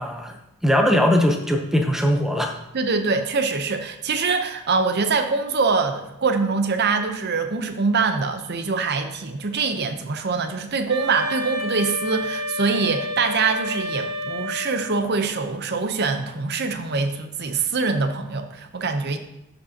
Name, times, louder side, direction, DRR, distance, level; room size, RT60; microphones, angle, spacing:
voice 1, 0.0-2.6, equal, ahead, 3 dB, 0.7 m, -20 dB
voice 2, 2.7-19.2, right 4 dB, 50° right, 7 dB, 0.7 m, -24 dB
Wind instrument woodwind instrument, 10.9-15.1, equal, 75° right, 1.1 m, -30 dB
12.0 x 5.3 x 2.8 m, 0.90 s
head